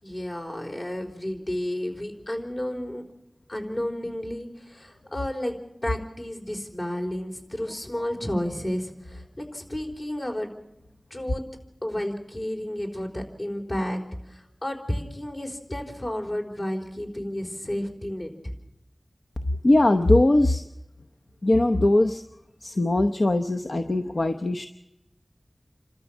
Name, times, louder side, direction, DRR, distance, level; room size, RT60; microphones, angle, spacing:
voice 1, 0.0-3.0 3.5-10.5 11.1-11.4 11.8-14.0 14.3-18.5, left 1 dB, 45° left, 3 dB, 4.1 m, -32 dB
voice 2, 19.6-20.6 21.4-22.2 22.6-24.7, left 1 dB, 65° left, 7 dB, 0.8 m, -21 dB
28.5 x 13.5 x 7.3 m, 0.87 s
wide cardioid pair, 45°, 0 cm